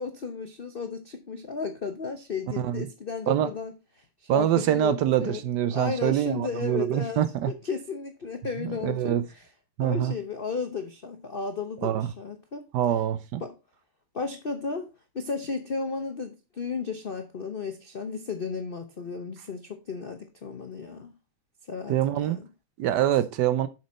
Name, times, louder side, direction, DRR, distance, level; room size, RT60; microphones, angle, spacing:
voice 1, 0.0-5.4 5.7-9.4 9.8-12.7 13.4-13.5 14.1-14.9 15.1-21.1 21.7-22.5, left 5 dB, 80° left, 0.5 m, -34 dB
voice 2, 2.6-2.9 3.3-3.5 4.3-7.5 8.6-9.2 9.8-10.1 11.8-12.1 12.7-13.4 21.9-22.4 22.8-23.7, right 11 dB, 70° right, 1.0 m, -25 dB
7.5 x 5.9 x 4.1 m
omnidirectional pair, 2.2 m